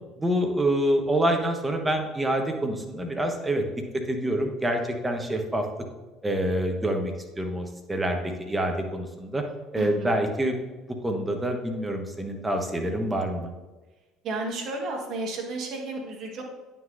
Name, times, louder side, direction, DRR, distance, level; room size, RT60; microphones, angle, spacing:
voice 1, 0.2-3.6 3.9-5.6 6.2-9.4 9.7-10.6 11.0-13.5, right 1 dB, 15° right, 3 dB, 1.1 m, -26 dB
voice 2, 9.7-10.2 14.2-16.4, right 2 dB, 55° right, 1 dB, 1.5 m, -32 dB
9.3 x 5.9 x 2.6 m, 1.2 s
hypercardioid pair, 60°, 0 cm